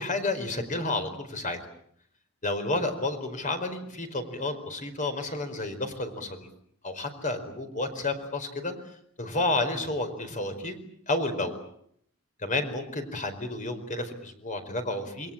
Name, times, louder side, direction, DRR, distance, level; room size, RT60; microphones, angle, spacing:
voice 1, 0.0-1.6 2.4-6.5 6.8-8.7 9.2-10.8 11.1-11.6 12.4-15.3, left 2 dB, 35° left, 8 dB, 4.7 m, -31 dB
29.0 x 22.0 x 8.8 m, 0.69 s
head